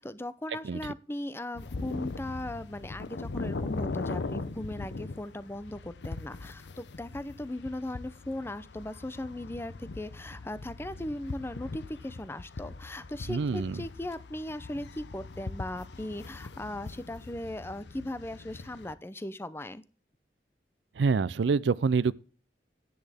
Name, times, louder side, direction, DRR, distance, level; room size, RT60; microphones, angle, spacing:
voice 1, 0.0-19.8, left 1 dB, 15° left, 0.5 m, -38 dB
sound 1, 1.5-18.9, left 3 dB, 75° left, 0.7 m, -40 dB
voice 2, 13.3-13.8 21.0-22.2, right 5 dB, 85° right, 0.4 m, -27 dB
10.5 x 10.0 x 3.5 m
head